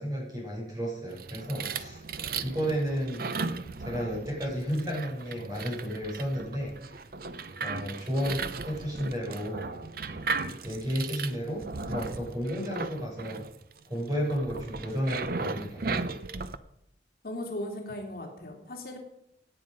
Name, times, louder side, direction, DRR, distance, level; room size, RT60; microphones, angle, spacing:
voice 1, 0.0-2.0 2.4-3.2 3.8-7.0 7.6-9.7 10.6-13.4 13.9-15.8, equal, 20° right, -3 dB, 6.4 m, -32 dB
sound 1, 1.1-16.6, right 4 dB, 55° right, 0.7 m, -36 dB
voice 2, 17.2-19.0, left 1 dB, 55° left, 1 dB, 2.9 m, -37 dB
17.0 x 9.1 x 5.3 m, 0.78 s
head